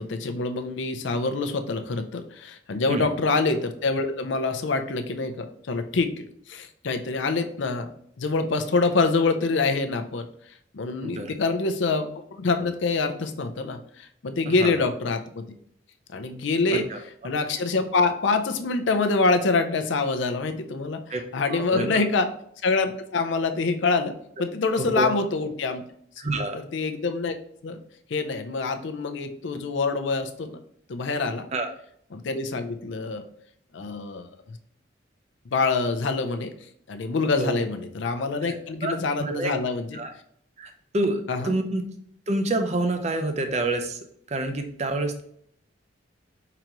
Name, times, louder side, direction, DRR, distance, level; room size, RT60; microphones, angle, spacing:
voice 1, 0.0-6.1 6.5-7.9 8.2-10.3 10.7-15.5 16.1-16.9 17.2-21.0 21.3-22.3 22.6-25.8 26.5-27.4 27.6-27.8 28.1-30.6 30.9-31.5 32.1-33.2 33.7-34.6 35.5-36.5 36.9-40.0 41.3-41.5, left 3 dB, 65° left, 7 dB, 0.5 m, -26 dB
voice 2, 11.0-11.3 14.5-14.7 16.7-17.0 21.1-21.2 21.5-22.0 25.0-25.1 26.2-26.6 31.5-31.7 37.4-37.6 38.4-38.5 38.8-38.9 39.2-39.5 39.9-40.1 40.6-41.8 42.3-44.0 44.3-45.2, right 2 dB, 35° right, 5 dB, 0.5 m, -27 dB
4.6 x 3.9 x 2.9 m, 0.66 s
head